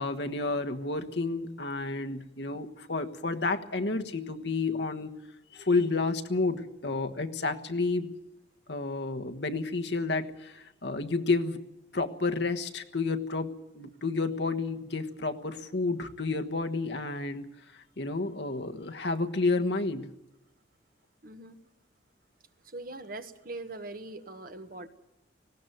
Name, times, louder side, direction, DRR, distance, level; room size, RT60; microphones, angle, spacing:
voice 1, 0.0-5.1 5.5-8.1 8.7-11.6 11.9-17.5 17.7-20.1, left 3 dB, 60° left, 7 dB, 1.3 m, -30 dB
voice 2, 21.2-21.6 22.6-24.9, right 2 dB, 50° right, 9 dB, 1.3 m, -41 dB
19.0 x 16.5 x 9.2 m, 0.91 s
head